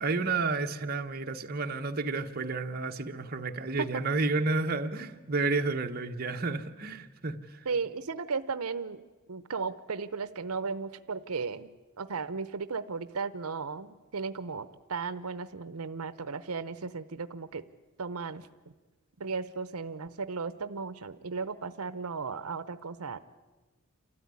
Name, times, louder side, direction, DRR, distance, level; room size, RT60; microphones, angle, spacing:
voice 1, 0.0-7.7, right 3 dB, 45° right, 4 dB, 1.2 m, -31 dB
voice 2, 7.7-9.0 9.3-11.7 12.0-17.6 18.0-18.5 19.2-23.2, right 4 dB, 80° right, 14 dB, 0.8 m, -35 dB
28.5 x 13.5 x 9.7 m, 1.3 s
head